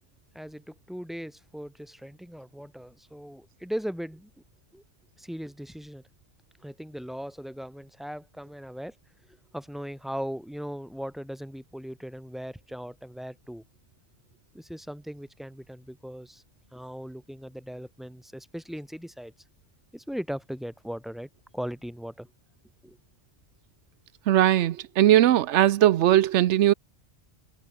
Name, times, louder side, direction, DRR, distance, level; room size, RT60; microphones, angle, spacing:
voice 1, 0.3-4.3 4.7-4.8 5.2-6.0 6.6-8.9 9.5-13.6 14.5-16.4 16.7-19.3 19.9-22.3 22.8-23.0, equal, ahead, 3.3 m, -38 dB
voice 2, 24.3-26.7, right 12 dB, 90° right, 0.9 m, -19 dB
omnidirectional pair, 1.2 m